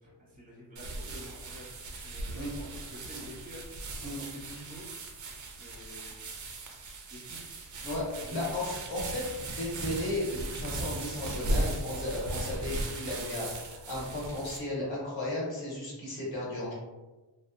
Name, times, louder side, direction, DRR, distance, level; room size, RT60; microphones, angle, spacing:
voice 1, 0.0-1.7 2.0-4.8 5.5-6.2 7.1-7.4 8.2-8.5, equal, 20° right, -6 dB, 1.3 m, -48 dB
sound 1, 0.8-14.6, right 2 dB, 45° right, 0.5 m, -37 dB
voice 2, 7.8-16.7, left 1 dB, 80° left, -5 dB, 1.3 m, -35 dB
2.7 x 2.3 x 2.4 m, 1.2 s
wide cardioid pair, 125°, 45 cm